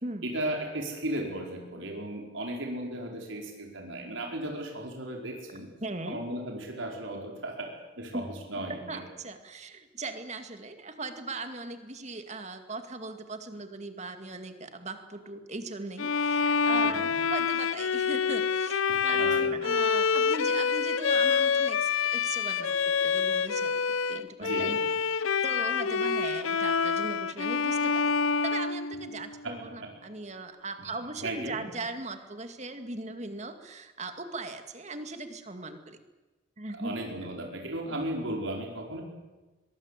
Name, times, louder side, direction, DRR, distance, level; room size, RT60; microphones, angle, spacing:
voice 1, 0.2-5.7 6.1-7.7 8.0-9.0 16.8-17.0 18.9-19.5 24.4-24.8 29.4-29.9 31.2-31.7 36.7-39.0, right 1 dB, 70° right, 1 dB, 4.8 m, -36 dB
voice 2, 5.8-6.2 8.1-8.2 8.7-22.8 23.0-23.8 24.1-24.8 25.4-28.1 28.4-36.0 36.6-37.0, right 2 dB, 35° right, 7 dB, 2.2 m, -38 dB
Bowed string instrument, 16.0-29.4, left 5 dB, 80° left, 0.7 m, -27 dB
23.0 x 22.5 x 8.4 m, 1.2 s
head